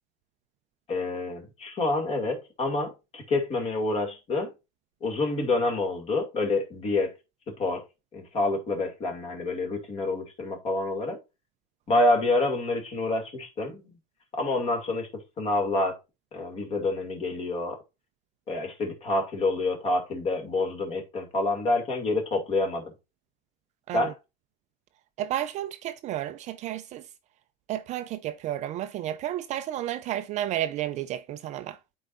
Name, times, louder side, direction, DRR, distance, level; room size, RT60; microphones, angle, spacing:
voice 1, 0.9-4.5 5.0-7.1 7.6-7.8 8.1-11.2 11.9-13.9 14.4-15.1 15.4-16.0 16.3-17.8 18.5-22.9 23.9-24.1, left 2 dB, 30° left, 2.3 m, -27 dB
voice 2, 25.2-27.1 27.7-31.8, right 12 dB, 35° right, 0.4 m, -32 dB
12.0 x 4.6 x 2.5 m
cardioid pair, 155°, 21 cm